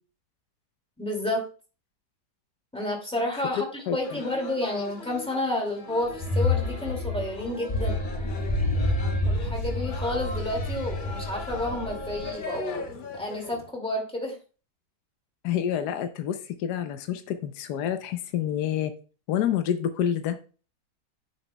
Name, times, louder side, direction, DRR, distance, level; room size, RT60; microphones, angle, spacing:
voice 1, 1.0-1.4 2.7-8.0 9.2-14.4, left 1 dB, 5° left, 0 dB, 2.2 m, -30 dB
voice 2, 3.5-4.0 15.4-18.9 19.3-20.4, left 9 dB, 75° left, 9 dB, 1.2 m, -28 dB
sound 1, 4.0-13.7, left 3 dB, 55° left, 0.5 m, -40 dB
sound 2, 6.0-12.4, left 2 dB, 25° left, 1.3 m, -28 dB
9.5 x 7.0 x 2.2 m, 0.36 s
omnidirectional pair, 1.8 m